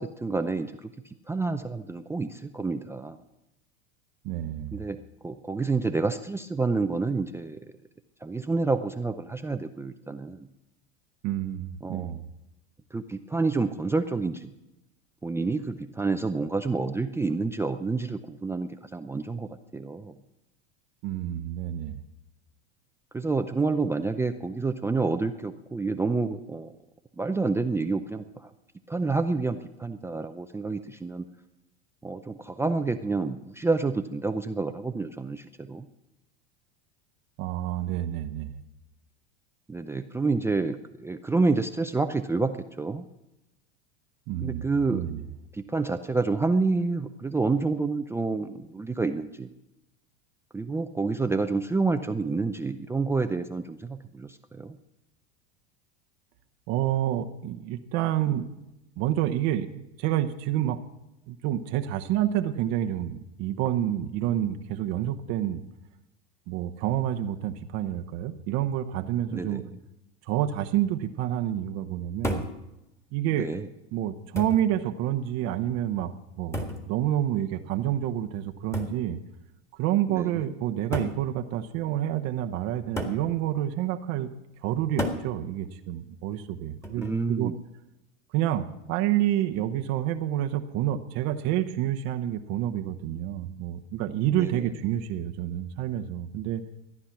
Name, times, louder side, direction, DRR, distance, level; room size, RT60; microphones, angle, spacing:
voice 1, 0.0-3.2 4.7-7.6 8.2-10.5 11.8-12.2 12.9-14.5 15.2-19.5 19.7-20.1 23.1-26.7 27.2-28.5 28.9-31.3 32.0-35.9 39.7-43.1 44.4-45.0 45.5-49.5 50.5-54.8 69.3-69.7 73.4-73.7 80.1-80.5 87.0-87.6 94.4-94.7, right 3 dB, 10° right, 7 dB, 0.5 m, -28 dB
voice 2, 4.2-4.8 11.2-12.2 21.0-22.0 37.4-38.6 44.3-44.6 44.9-45.2 56.7-58.5 59.0-60.8 61.3-65.6 66.5-69.6 70.3-72.4 73.1-73.5 73.9-76.1 76.4-79.2 79.8-84.3 84.6-87.5 88.3-96.6, right 12 dB, 55° right, 5 dB, 0.9 m, -28 dB
sound 1, 72.2-72.6 73.6-73.7 74.4-74.7 76.5-76.9 78.7-79.0 80.1-80.2 80.9-81.2 83.0-83.3 85.0-85.3 86.8-87.2, left 1 dB, 10° left, 1.7 m, -32 dB
14.5 x 9.8 x 5.9 m, 0.91 s
supercardioid pair, 115°, 32 cm